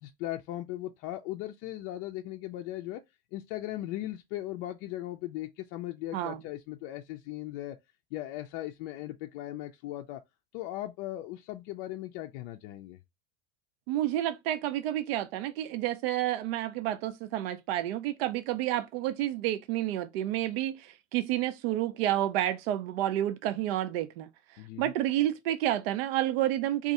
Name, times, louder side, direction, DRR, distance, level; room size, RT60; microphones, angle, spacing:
voice 1, 0.0-3.0 3.3-7.8 8.1-10.2 10.5-13.0 24.6-24.9, left 15 dB, 50° left, 0.4 m, -38 dB
voice 2, 13.9-24.3 24.8-26.9, right 13 dB, 75° right, 0.5 m, -30 dB
2.6 x 2.4 x 4.0 m
supercardioid pair, 135°, 30 cm